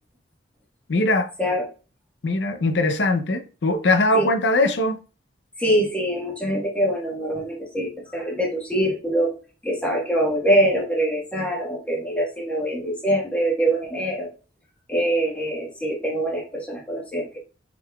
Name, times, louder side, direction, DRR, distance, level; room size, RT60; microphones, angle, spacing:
voice 1, 0.9-1.3 2.2-5.0, left 2 dB, 75° left, 0.6 m, -21 dB
voice 2, 5.6-9.3 9.6-14.3 14.9-17.4, right 1 dB, 5° left, 1.3 m, -24 dB
6.0 x 3.8 x 2.3 m
head